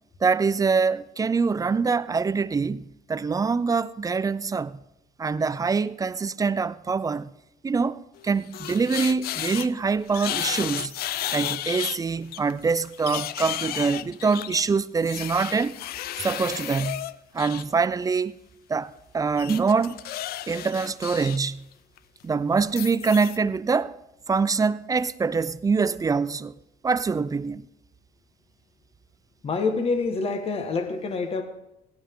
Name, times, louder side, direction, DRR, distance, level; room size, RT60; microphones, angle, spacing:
voice 1, 0.2-4.8 5.2-7.3 7.6-10.9 11.3-15.8 16.2-17.1 17.3-18.4 18.7-20.0 20.5-21.6 22.2-24.0 24.3-26.5 26.8-27.6, right 5 dB, 20° right, 0.5 m, -24 dB
sound 1, 8.2-9.7 10.1-12.0 12.3-17.6 19.4-21.4 21.7-22.0 22.6-23.4, left 12 dB, 65° left, 0.6 m, -33 dB
voice 2, 29.4-31.4, left 4 dB, 35° left, 1.5 m, -26 dB
17.0 x 15.5 x 3.7 m
cardioid pair, 110°, 17 cm